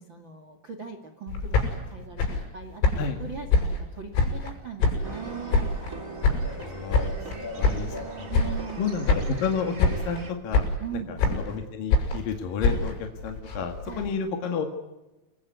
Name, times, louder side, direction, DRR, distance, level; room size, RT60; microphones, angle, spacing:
voice 1, 0.0-2.8 3.2-5.7 6.7-9.3 10.8-11.2 13.8-14.1, right 6 dB, 75° right, 5 dB, 1.0 m, -40 dB
sound 1, 1.3-4.5 4.8-6.0 6.2-8.0 8.3-8.8 9.1-9.5 9.8-10.2 10.5-11.6 11.9-14.1, left 3 dB, 85° left, 9.9 m, -25 dB
sound 2, 5.0-10.3, right 1 dB, 25° right, 1.9 m, -39 dB
voice 2, 6.6-8.3 8.8-10.6 11.3-12.9 13.2-14.6, left 6 dB, 55° left, 4 dB, 3.0 m, -31 dB
29.0 x 21.0 x 9.5 m, 1.0 s
omnidirectional pair, 6.0 m